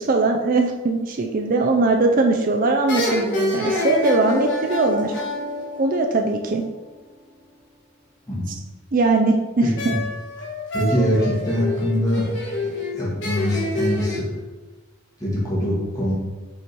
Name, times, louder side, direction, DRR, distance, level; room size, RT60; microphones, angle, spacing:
voice 1, 0.0-5.1 5.8-6.6 8.9-9.9, right 3 dB, 40° right, 2 dB, 0.5 m, -20 dB
sound 1, 2.1-2.5 2.9-6.5 9.8-14.2, left 1 dB, 55° left, 1.3 m, -27 dB
voice 2, 9.6-10.0 10.7-12.3 12.9-14.3 15.2-16.1, equal, 15° left, -7 dB, 2.0 m, -23 dB
5.6 x 4.3 x 4.6 m, 1.2 s
head